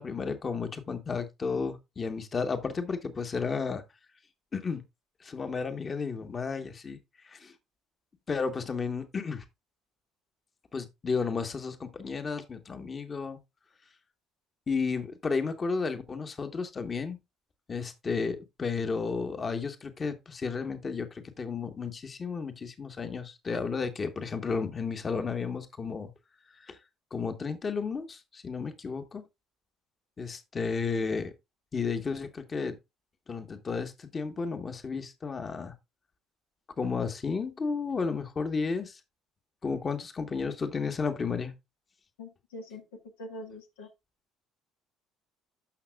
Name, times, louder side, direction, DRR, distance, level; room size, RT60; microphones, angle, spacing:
voice 1, 0.0-3.8 4.5-4.8 5.2-7.0 7.2-7.5 8.3-9.4 10.7-13.4 14.7-17.2 17.7-26.1 26.5-26.8 27.1-29.2 30.2-31.3 31.7-32.7 33.3-35.7 36.8-39.0 39.6-41.5, left 5 dB, 35° left, 1.3 m, -33 dB
voice 2, 42.2-42.8 43.2-43.9, left 1 dB, 80° left, 1.4 m, -43 dB
13.0 x 5.9 x 2.3 m
hypercardioid pair, 60°, 0 cm